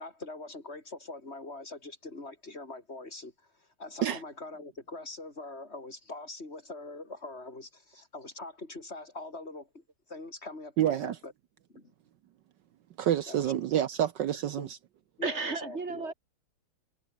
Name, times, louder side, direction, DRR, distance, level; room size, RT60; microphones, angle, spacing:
voice 1, 0.0-11.3 11.7-11.9 13.3-13.5 14.6-14.7 15.2-16.1, left 2 dB, 30° left, 4.9 m, -43 dB
voice 2, 10.8-11.1 13.0-14.7, right 11 dB, 65° right, 1.2 m, -28 dB
voice 3, 15.2-16.1, right 4 dB, 30° right, 3.1 m, -33 dB
omnidirectional pair, 2.4 m